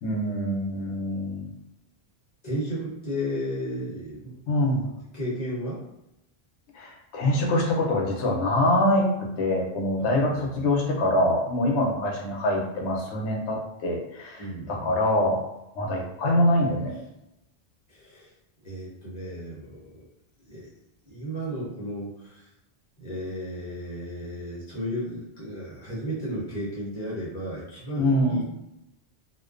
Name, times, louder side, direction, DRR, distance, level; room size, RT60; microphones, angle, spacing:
voice 1, 0.0-1.5 4.5-4.9 6.7-15.4 15.8-17.0 28.0-28.4, left 1 dB, 90° left, -1 dB, 0.9 m, -24 dB
voice 2, 2.4-4.4 4.8-5.8 10.0-10.7 14.4-15.0 17.9-18.3 18.6-20.1 20.5-20.7 21.0-22.5 23.0-28.4, equal, 45° left, -7 dB, 0.8 m, -34 dB
2.4 x 2.2 x 2.4 m, 0.88 s
omnidirectional pair, 1.1 m